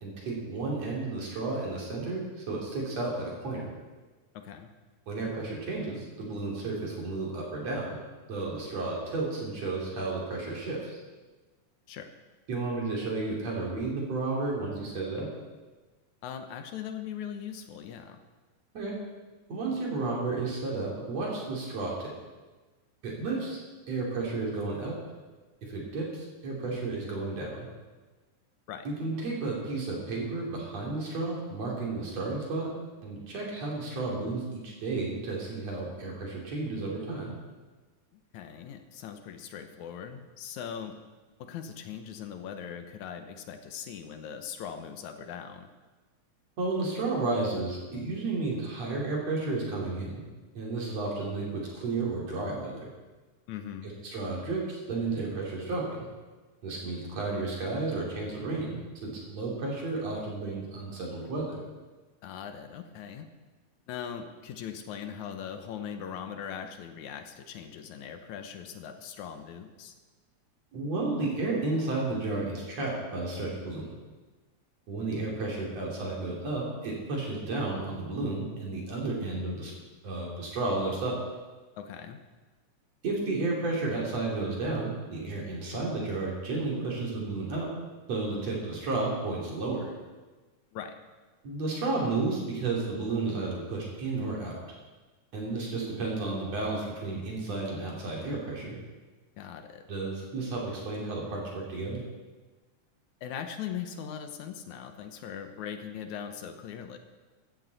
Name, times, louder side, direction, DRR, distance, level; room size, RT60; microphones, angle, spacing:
voice 1, 0.0-3.7 5.1-8.0 8.3-11.0 12.5-15.3 18.7-19.0 19.5-22.1 23.0-23.6 23.9-25.0 25.7-27.7 28.9-32.7 33.0-37.3 46.6-50.2 50.6-52.9 53.8-56.1 56.6-61.6 70.7-73.9 74.9-79.7 80.0-81.2 83.0-87.7 88.1-89.9 91.4-94.6 95.3-98.8 99.9-102.0, right 3 dB, 60° right, -3 dB, 3.9 m, -32 dB
voice 2, 4.3-4.7 11.9-12.1 16.2-18.2 28.7-28.9 38.3-41.0 41.4-45.7 53.5-53.9 62.2-63.3 63.9-70.0 81.8-82.2 90.7-90.9 99.4-99.8 103.2-107.0, left 8 dB, 75° left, 7 dB, 2.3 m, -40 dB
15.0 x 13.5 x 4.1 m, 1.3 s
omnidirectional pair, 3.4 m